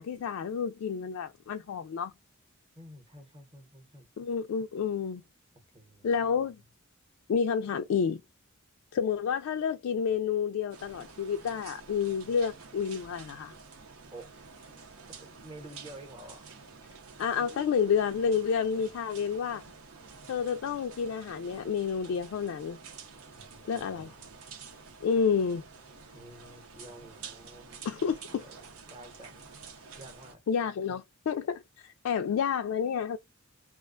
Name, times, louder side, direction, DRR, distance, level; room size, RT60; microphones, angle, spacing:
voice 1, 0.0-2.1 4.2-5.2 6.0-6.6 7.3-8.2 8.9-13.5 17.2-19.6 20.3-22.8 23.7-24.1 25.0-25.6 27.9-28.4 30.5-33.2, left 6 dB, 70° left, 0.3 m, -29 dB
voice 2, 2.8-4.1 5.7-6.6 14.1-14.3 15.1-16.4 17.4-17.8 23.3-24.3 26.1-29.5 29.9-30.4, right 1 dB, 25° right, 0.8 m, -50 dB
sound 1, 10.7-30.3, right 5 dB, 80° right, 0.8 m, -49 dB
2.4 x 2.2 x 2.3 m
head